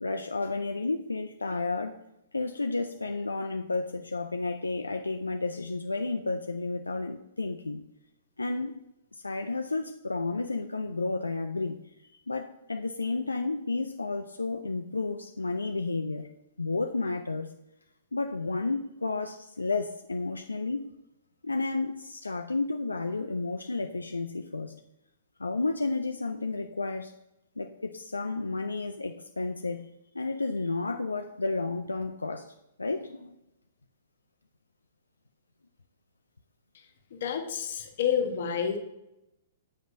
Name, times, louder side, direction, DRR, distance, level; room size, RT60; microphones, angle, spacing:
voice 1, 0.0-2.0 2.3-7.8 8.4-8.7 9.1-11.8 12.1-16.3 16.6-17.5 18.1-20.9 21.4-24.8 25.4-27.1 27.6-29.9 30.1-33.3, left 3 dB, 90° left, 6 dB, 0.3 m, -32 dB
voice 2, 36.7-38.8, left 8 dB, 60° left, 5 dB, 0.9 m, -30 dB
7.6 x 5.2 x 2.6 m, 0.87 s
figure-of-eight pair, 115°, 0 cm